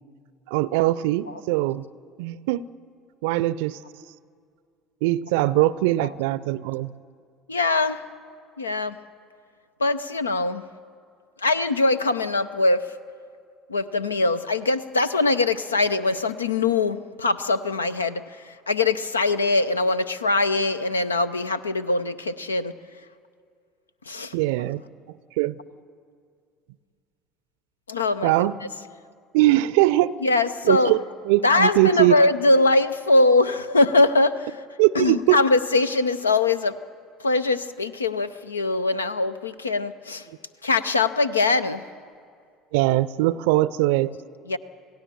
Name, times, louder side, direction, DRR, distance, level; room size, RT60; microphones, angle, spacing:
voice 1, 0.5-1.8 2.2-2.6 3.2-3.8 5.0-6.9 24.3-24.8 25.4-25.6 28.2-28.6 29.3-30.1 30.6-32.1 34.8-35.4 42.7-44.1, right 17 dB, 65° right, 19 dB, 0.5 m, -21 dB
voice 2, 7.5-8.0 8.6-9.0 9.8-10.6 11.4-12.8 13.7-18.2 18.7-22.7 24.1-24.3 27.9-28.3 30.2-30.9 31.4-34.5 35.0-36.8 37.2-40.2 40.6-41.8 44.5-44.6, left 3 dB, 80° left, 13 dB, 0.6 m, -22 dB
27.5 x 17.0 x 7.1 m, 2.2 s
figure-of-eight pair, 60°, 0 cm